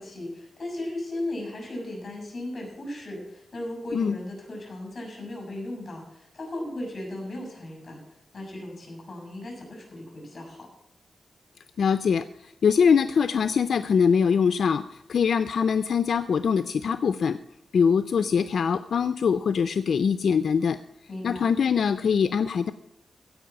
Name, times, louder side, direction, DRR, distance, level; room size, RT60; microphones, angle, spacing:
voice 1, 0.0-8.0 8.3-10.7 21.1-21.5, left 1 dB, 35° left, 0 dB, 6.1 m, -36 dB
voice 2, 11.8-14.8 15.1-17.4 17.7-20.8 21.2-22.7, left 6 dB, 75° left, 11 dB, 0.4 m, -23 dB
16.0 x 5.4 x 7.0 m, 0.82 s
wide cardioid pair, 135°, 0 cm